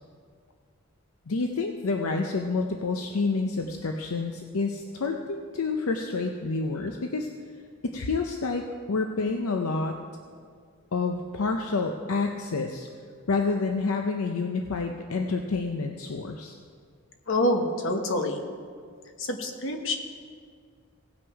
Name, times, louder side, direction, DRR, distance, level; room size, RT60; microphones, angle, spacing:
voice 1, 1.3-7.3 7.8-9.9 10.9-12.9 13.3-16.6, left 3 dB, 75° left, 3 dB, 0.6 m, -28 dB
voice 2, 17.3-18.4 19.2-20.0, left 1 dB, 60° left, 4 dB, 1.1 m, -26 dB
17.5 x 6.2 x 4.7 m, 2.1 s
head